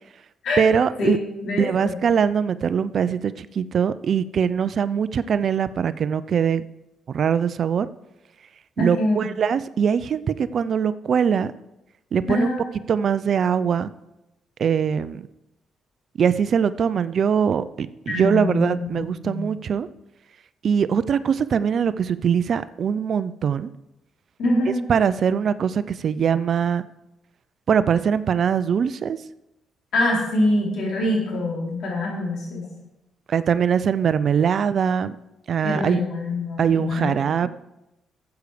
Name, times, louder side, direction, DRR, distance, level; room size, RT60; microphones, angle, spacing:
voice 1, 0.6-1.2 1.6-6.6 7.1-7.9 8.8-11.5 12.1-12.5 12.9-13.9 14.6-15.2 16.2-19.9 20.6-23.7 24.9-26.8 27.7-29.2 33.3-35.2 35.5-36.0 36.6-37.5, right 7 dB, 55° right, 15 dB, 0.5 m, -22 dB
voice 2, 1.4-1.9 8.8-9.3 12.3-12.7 18.1-19.5 24.4-24.8 29.9-32.7 35.6-37.1 37.4-37.5, left 1 dB, 70° left, -2 dB, 4.1 m, -24 dB
13.0 x 8.2 x 5.0 m, 0.92 s
cardioid pair, 90°, 0 cm